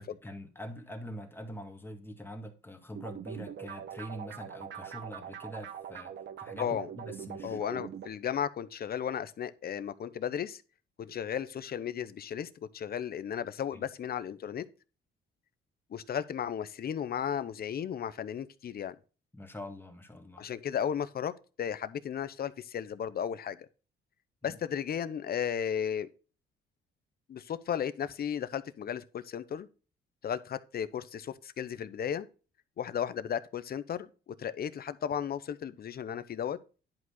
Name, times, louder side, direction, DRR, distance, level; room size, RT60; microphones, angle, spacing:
voice 1, 0.0-6.1 6.4-7.6 13.7-13.8 19.3-20.5 24.4-24.6, equal, 10° left, 2.0 m, -44 dB
sound 1, 2.9-8.1, right 8 dB, 65° right, 1.2 m, -43 dB
voice 2, 7.4-10.6 11.0-14.7 15.9-18.9 20.4-21.3 21.6-23.6 24.4-26.1 27.3-29.7 30.2-32.3 32.8-34.1 34.4-36.6, left 8 dB, 50° left, 0.8 m, -34 dB
11.0 x 4.9 x 4.0 m
cardioid pair, 90°, 20 cm